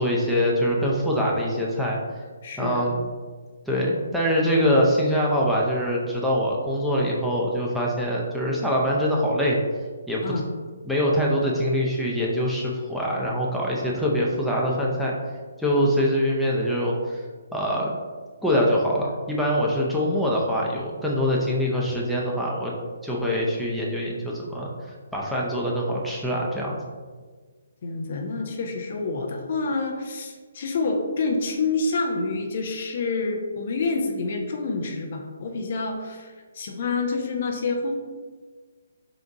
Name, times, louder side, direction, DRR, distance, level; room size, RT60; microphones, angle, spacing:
voice 1, 0.0-2.0 2.6-3.0 3.7-9.6 10.1-10.3 10.9-15.1 15.6-17.2 17.5-18.0 18.4-22.7 23.0-24.7 25.1-26.8, equal, ahead, -5 dB, 0.6 m, -24 dB
voice 2, 2.4-2.9 10.2-10.5 27.8-37.9, left 3 dB, 50° left, 3 dB, 0.6 m, -28 dB
4.0 x 3.4 x 3.8 m, 1.5 s
figure-of-eight pair, 140°, 0 cm